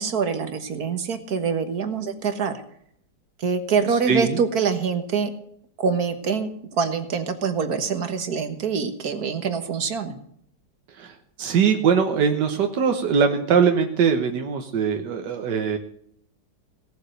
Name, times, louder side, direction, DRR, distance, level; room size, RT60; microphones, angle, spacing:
voice 1, 0.0-2.5 3.4-5.3 5.8-10.2, right 5 dB, 60° right, 8 dB, 1.8 m, -25 dB
voice 2, 3.9-4.4 10.9-15.8, right 6 dB, 85° right, 4 dB, 1.8 m, -22 dB
18.0 x 7.1 x 6.5 m, 0.68 s
omnidirectional pair, 1.8 m